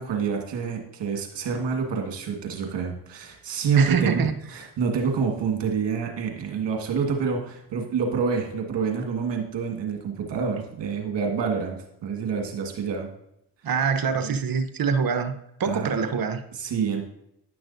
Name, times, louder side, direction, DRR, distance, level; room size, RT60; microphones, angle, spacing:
voice 1, 0.0-13.1 14.2-14.3 15.6-15.9 16.5-17.0, right 6 dB, 65° right, 2 dB, 1.7 m, -27 dB
voice 2, 3.8-4.3 13.6-15.3 15.6-16.4, right 6 dB, 50° right, 9 dB, 0.9 m, -24 dB
9.9 x 6.0 x 2.6 m, 0.79 s
supercardioid pair, 50°, 46 cm